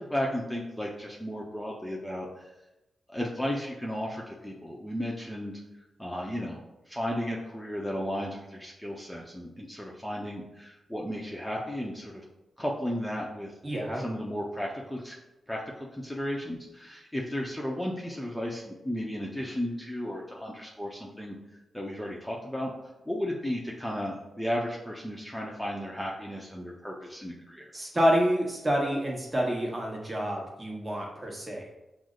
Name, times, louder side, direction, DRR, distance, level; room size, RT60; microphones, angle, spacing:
voice 1, 0.0-2.5 3.1-5.5 6.0-6.6 6.9-12.2 12.6-13.5 14.0-15.1 15.5-21.4 21.7-22.7 23.1-27.7, equal, 5° left, -3 dB, 0.8 m, -34 dB
voice 2, 13.6-14.0 27.7-31.6, equal, 25° right, -2 dB, 1.3 m, -28 dB
6.0 x 2.1 x 3.8 m, 0.98 s
supercardioid pair, 45°, 0 cm